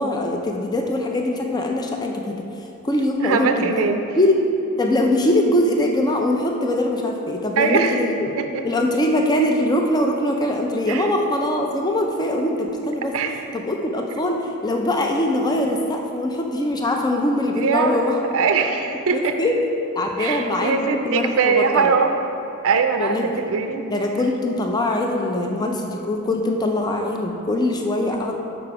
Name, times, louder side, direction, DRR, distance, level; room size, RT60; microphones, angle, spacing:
voice 1, 0.0-2.4 2.8-3.9 4.2-4.4 4.8-8.3 8.6-13.1 13.5-18.1 19.1-19.6 20.0-20.8 21.0-21.9 23.0-23.4 23.9-28.3, left 1 dB, 20° left, 2 dB, 0.4 m, -22 dB
voice 2, 3.2-4.0 7.6-8.0 8.4-8.7 10.9-11.1 13.1-13.4 17.6-18.0 18.3-19.4 20.2-22.1 22.6-23.8, right 5 dB, 65° right, 6 dB, 0.4 m, -21 dB
6.7 x 4.9 x 4.7 m, 2.9 s
head